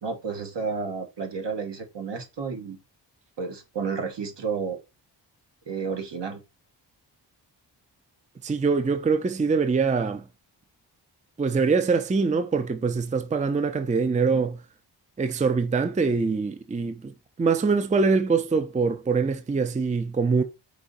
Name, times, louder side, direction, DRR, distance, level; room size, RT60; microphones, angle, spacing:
voice 1, 0.0-2.8 3.4-4.8 5.6-6.4 14.3-14.4, right 5 dB, 70° right, 1.3 m, -31 dB
voice 2, 8.4-10.2 11.4-14.6 15.2-17.1 17.4-20.4, right 4 dB, 15° right, 0.5 m, -24 dB
4.8 x 2.7 x 3.9 m
cardioid pair, 85°, 43 cm